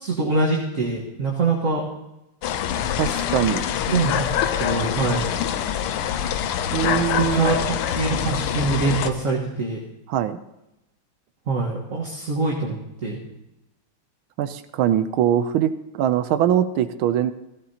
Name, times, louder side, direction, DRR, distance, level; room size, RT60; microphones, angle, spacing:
voice 1, 0.0-1.8 3.9-5.2 6.8-9.8 11.5-12.7 13.0-13.2, right 3 dB, 40° right, -3 dB, 1.6 m, -24 dB
sound 1, 2.4-9.1, left 9 dB, 85° left, 1.6 m, -25 dB
voice 2, 3.0-3.7 6.7-7.6 10.1-10.4 14.4-17.3, right 10 dB, 75° right, 12 dB, 1.4 m, -22 dB
16.0 x 15.5 x 2.8 m, 0.90 s
omnidirectional pair, 2.4 m